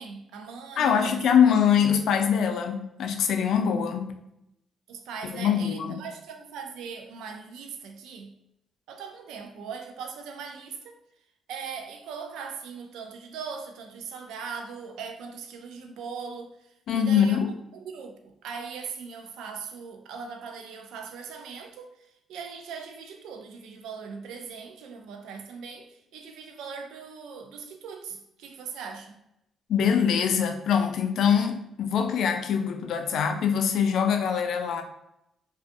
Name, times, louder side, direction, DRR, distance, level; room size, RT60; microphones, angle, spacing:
voice 1, 0.0-1.2 4.9-8.3 8.9-11.0 11.5-16.5 16.9-17.4 17.7-21.9 22.3-29.1, right 5 dB, 90° right, 0.3 m, -40 dB
voice 2, 0.8-4.1 5.3-6.0 16.9-17.5 29.7-34.8, left 7 dB, 75° left, 0.3 m, -23 dB
2.5 x 2.3 x 2.5 m
cardioid pair, 90°, 0 cm